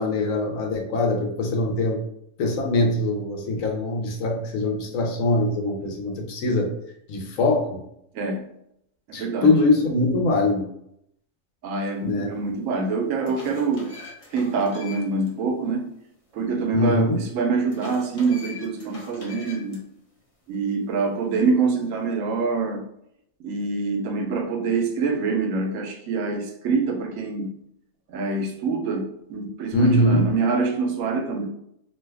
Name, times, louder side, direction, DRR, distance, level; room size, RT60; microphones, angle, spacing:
voice 1, 0.0-2.0 2.4-6.7 7.1-7.8 9.1-10.7 12.0-12.3 16.7-17.2 29.7-30.3, left 2 dB, 85° left, 2 dB, 1.1 m, -22 dB
voice 2, 9.1-9.6 11.6-13.9 14.3-15.9 16.3-19.8 20.5-22.8 23.4-27.5 28.1-31.4, right 4 dB, 80° right, 3 dB, 1.0 m, -25 dB
sound 1, 12.3-12.4 12.9-15.3 15.7-15.8 17.7-19.8, left 3 dB, 35° left, 0.6 m, -43 dB
2.8 x 2.2 x 3.3 m, 0.74 s
omnidirectional pair, 1.3 m